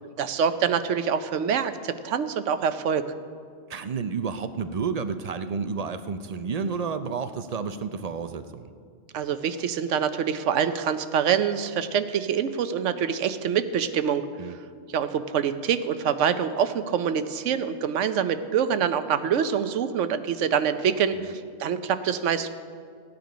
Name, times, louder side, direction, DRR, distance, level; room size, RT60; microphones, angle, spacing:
voice 1, 0.2-3.0 9.1-14.2 14.9-22.5, right 7 dB, 80° right, 11 dB, 1.0 m, -25 dB
voice 2, 3.7-8.7 14.4-14.6 21.1-21.2, right 5 dB, 55° right, 10 dB, 0.4 m, -31 dB
16.5 x 9.6 x 5.1 m, 2.2 s
omnidirectional pair, 1.2 m